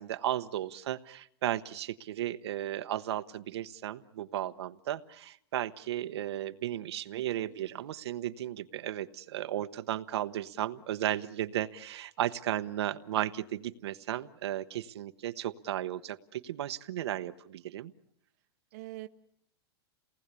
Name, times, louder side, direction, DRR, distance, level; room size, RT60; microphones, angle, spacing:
voice 1, 0.0-17.9, right 12 dB, 75° right, 10 dB, 1.0 m, -35 dB
voice 2, 7.1-7.8 18.7-19.1, right 17 dB, 40° right, 8 dB, 0.9 m, -46 dB
29.0 x 19.0 x 8.3 m, 0.71 s
supercardioid pair, 175°, 14 cm